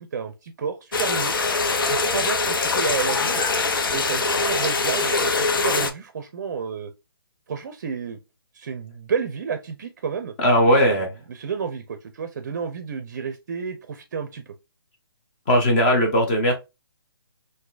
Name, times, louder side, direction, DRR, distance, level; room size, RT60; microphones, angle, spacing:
voice 1, 0.0-1.4 1.9-3.4 3.9-6.9 7.5-8.2 8.5-10.3 10.8-14.4, right 6 dB, 45° right, 0.5 m, -31 dB
sound 1, 0.9-5.9, left 3 dB, 60° left, 0.6 m, -23 dB
voice 2, 10.4-11.1 15.5-16.5, equal, 25° left, 0.9 m, -18 dB
3.9 x 2.6 x 2.4 m
hypercardioid pair, 155°, 13 cm